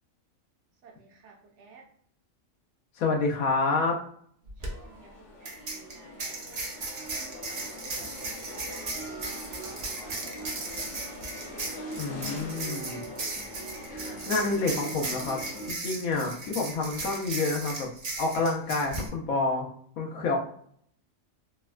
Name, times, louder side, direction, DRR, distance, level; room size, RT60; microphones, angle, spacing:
voice 1, 0.8-1.9 4.6-8.9 9.5-10.9 11.5-12.3, right 4 dB, 65° right, 1 dB, 0.8 m, -53 dB
voice 2, 3.0-4.0 12.0-13.0 13.9-15.4 15.7-17.9 18.2-20.4, left 3 dB, 85° left, 0 dB, 1.1 m, -28 dB
sound 1, 4.5-4.7 5.4-19.1, right 3 dB, 85° right, 0.3 m, -37 dB
sound 2, 4.6-15.7, equal, 70° left, 0.9 m, -42 dB
3.3 x 2.1 x 2.2 m, 0.62 s
omnidirectional pair, 1.4 m